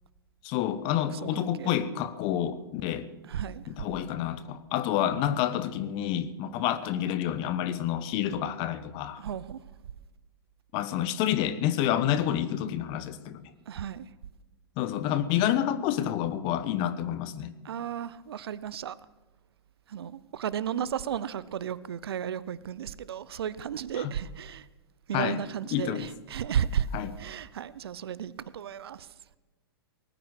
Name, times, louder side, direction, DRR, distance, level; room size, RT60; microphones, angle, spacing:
voice 1, 0.4-3.1 3.7-9.2 10.7-13.4 14.8-17.5 23.9-24.1 25.1-25.4 25.7-26.1 26.9-27.1, left 11 dB, 40° left, 1.1 m, -28 dB
voice 2, 1.1-1.7 3.2-3.6 9.2-9.6 13.7-14.1 17.6-19.0 19.9-24.7 25.1-26.9 27.2-29.1, right 9 dB, 70° right, 0.7 m, -34 dB
19.0 x 9.1 x 6.4 m
hypercardioid pair, 115°, 13 cm